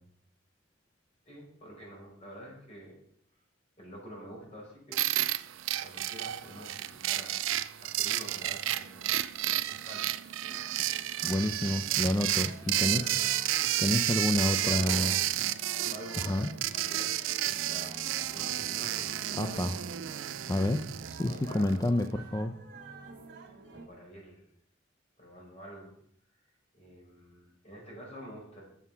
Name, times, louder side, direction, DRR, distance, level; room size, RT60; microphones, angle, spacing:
voice 1, 1.2-2.9 3.8-5.0 5.8-7.4 7.7-9.1 9.4-10.1 12.9-13.1 14.3-15.2 15.8-19.8 21.2-21.8 22.9-23.0 23.7-24.5 25.2-25.9 26.7-28.6, equal, 35° left, -3 dB, 4.6 m, -47 dB
sound 1, 4.9-21.9, right 13 dB, 80° right, 0.4 m, -31 dB
sound 2, 10.4-23.9, right 2 dB, 60° right, 1.6 m, -50 dB
voice 2, 11.2-13.1 13.8-15.1 16.2-16.5 19.3-19.8 20.5-22.5, left 1 dB, 20° left, 7 dB, 0.4 m, -29 dB
9.4 x 7.0 x 5.6 m, 0.66 s
head